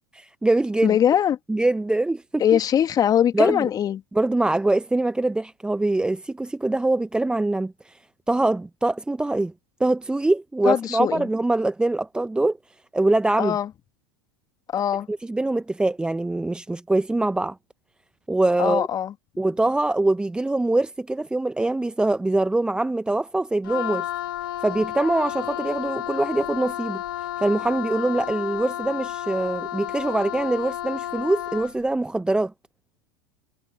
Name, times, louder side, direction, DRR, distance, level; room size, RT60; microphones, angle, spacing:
voice 1, 0.3-1.0 1.5-2.6 3.3-3.7 4.1-8.0 8.3-9.5 9.8-12.6 12.9-13.6 15.1-17.6 18.3-18.9 19.4-24.1 24.6-27.0 27.4-32.5, right 2 dB, 5° right, 1.0 m, -23 dB
voice 2, 0.8-1.4 2.4-4.0 10.6-11.3 13.4-13.7 14.7-15.1 18.6-19.1, left 9 dB, 30° left, 2.1 m, -21 dB
Wind instrument woodwind instrument, 23.6-31.8, left 13 dB, 65° left, 1.7 m, -31 dB
figure-of-eight pair, 85°, 12 cm